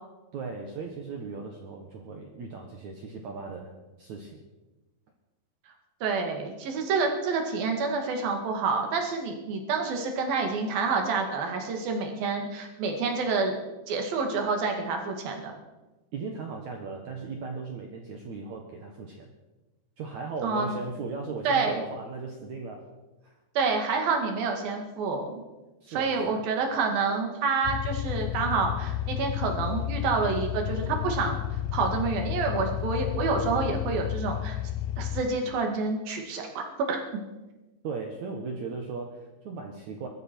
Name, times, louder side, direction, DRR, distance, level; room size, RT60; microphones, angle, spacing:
voice 1, 0.3-3.7 4.0-4.4 16.1-19.3 20.0-22.9 23.2-23.3 25.8-26.5 37.8-40.1, right 4 dB, 75° right, 2 dB, 1.7 m, -37 dB
voice 2, 6.0-13.5 13.9-15.5 20.4-20.7 21.4-21.8 23.5-25.4 25.9-31.4 31.7-34.6 35.0-37.2, right 4 dB, 55° right, 3 dB, 3.3 m, -28 dB
sound 1, 27.6-35.2, left 13 dB, 85° left, 3.2 m, -31 dB
21.5 x 13.5 x 4.5 m, 1.1 s
omnidirectional pair, 5.5 m